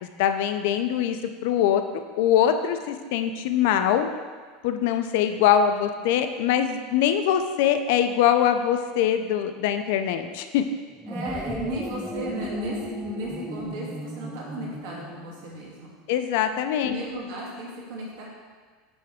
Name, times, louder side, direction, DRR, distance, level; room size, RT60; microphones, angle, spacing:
voice 1, 0.0-4.1 4.6-10.6 16.1-16.9, left 9 dB, 65° left, 8 dB, 0.4 m, -23 dB
sound 1, 10.9-15.5, equal, ahead, 0.4 m, -35 dB
voice 2, 11.1-15.9 16.8-18.3, right 1 dB, 70° right, -4 dB, 1.9 m, -35 dB
9.5 x 3.4 x 3.6 m, 1.5 s
supercardioid pair, 160°, 0 cm